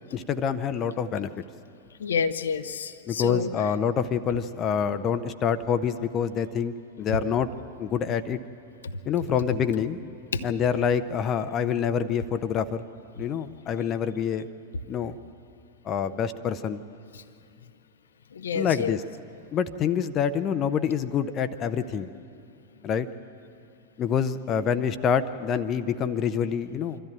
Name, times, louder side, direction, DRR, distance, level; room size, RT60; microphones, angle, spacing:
voice 1, 0.1-1.3 3.1-7.5 7.8-8.4 9.1-10.0 10.4-12.8 13.2-14.5 14.9-15.2 15.8-16.8 18.5-19.0 19.5-22.1 22.8-23.1 24.0-27.0, left 7 dB, 30° left, 11 dB, 0.7 m, -26 dB
voice 2, 2.0-3.5 8.8-8.9 10.3-10.5 17.1-17.2 18.3-19.0, left 6 dB, 65° left, 10 dB, 0.7 m, -29 dB
26.0 x 13.5 x 9.1 m, 2.6 s
figure-of-eight pair, 90°, 0 cm